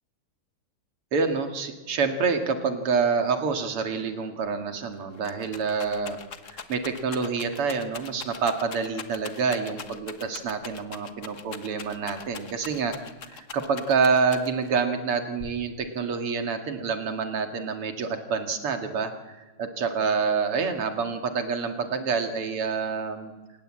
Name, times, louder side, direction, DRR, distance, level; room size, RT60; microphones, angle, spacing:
voice 1, 1.1-6.2 6.5-13.0 13.2-23.3, right 5 dB, 90° right, 6 dB, 3.0 m, -27 dB
Rattle, 4.5-4.6 4.8-14.8 15.4-16.0, left 6 dB, 45° left, 1.3 m, -42 dB
27.5 x 16.5 x 8.8 m, 1.2 s
omnidirectional pair, 2.4 m